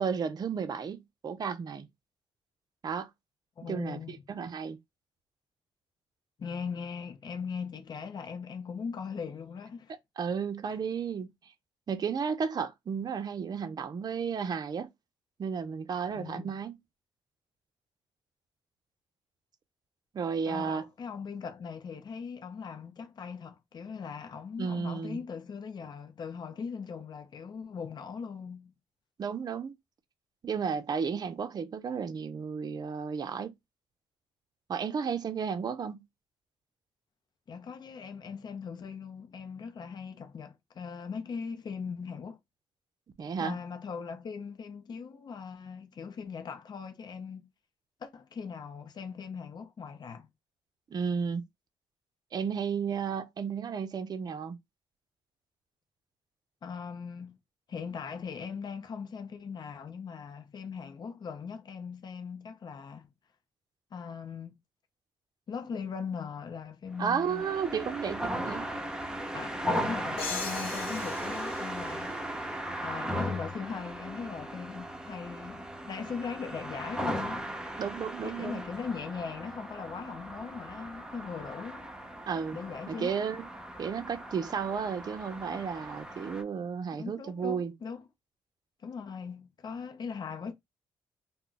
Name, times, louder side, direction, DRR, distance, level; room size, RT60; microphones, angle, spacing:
voice 1, 0.0-1.9 2.8-3.1 3.6-4.8 10.2-11.3 11.9-14.9 15.4-16.7 20.1-20.8 24.6-25.2 29.2-29.7 30.4-33.5 34.7-36.0 43.2-43.5 50.9-51.4 52.3-54.6 67.0-68.7 77.8-78.6 82.3-82.6 82.9-83.5 83.8-87.7, right 6 dB, 45° right, 0.5 m, -33 dB
voice 2, 3.6-4.2 6.4-9.9 10.7-10.8 16.1-16.5 20.5-28.7 37.5-42.4 43.4-47.5 48.0-50.3 56.6-57.4 57.7-63.1 63.9-64.5 65.5-67.5 69.3-72.2 72.8-77.5 78.2-81.9 82.5-83.2 86.9-88.1 88.8-90.5, left 6 dB, 45° left, 0.6 m, -40 dB
sound 1, 66.9-86.4, equal, 10° right, 0.7 m, -37 dB
sound 2, 70.2-72.8, left 6 dB, 85° left, 0.8 m, -40 dB
2.2 x 2.1 x 3.8 m
supercardioid pair, 60°, 10 cm